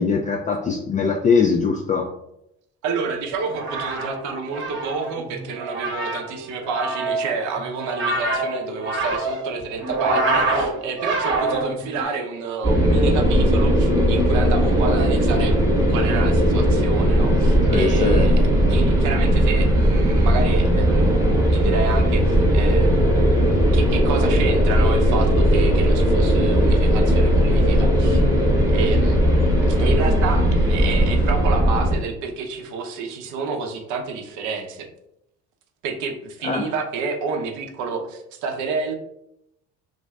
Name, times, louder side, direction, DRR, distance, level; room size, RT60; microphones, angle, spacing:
voice 1, 0.0-2.1 17.7-18.3 36.4-36.7, left 5 dB, 25° left, 1 dB, 0.3 m, -21 dB
voice 2, 2.8-18.3 18.7-23.2 23.7-28.2 28.7-34.9 35.8-39.0, right 4 dB, 65° right, 4 dB, 0.7 m, -29 dB
sound 1, 3.4-12.0, right 2 dB, 35° right, 1.0 m, -26 dB
sound 2, 12.6-32.0, equal, 10° right, 0.9 m, -18 dB
2.6 x 2.3 x 3.2 m, 0.80 s
hypercardioid pair, 65°, 33 cm